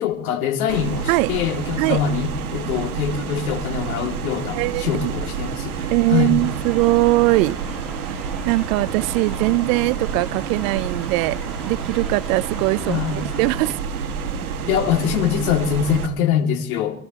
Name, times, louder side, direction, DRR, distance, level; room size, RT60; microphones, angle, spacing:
voice 1, 0.0-6.4 12.8-13.2 14.7-17.0, left 9 dB, 75° left, 2.6 m, -23 dB
sound 1, 0.7-16.1, right 6 dB, 85° right, 1.6 m, -29 dB
voice 2, 4.5-5.1 5.9-7.6 8.1-13.8, right 20 dB, 65° right, 0.8 m, -21 dB
sound 2, 6.4-13.7, right 1 dB, ahead, 2.7 m, -41 dB
27.0 x 13.5 x 3.0 m
hypercardioid pair, 75°, 43 cm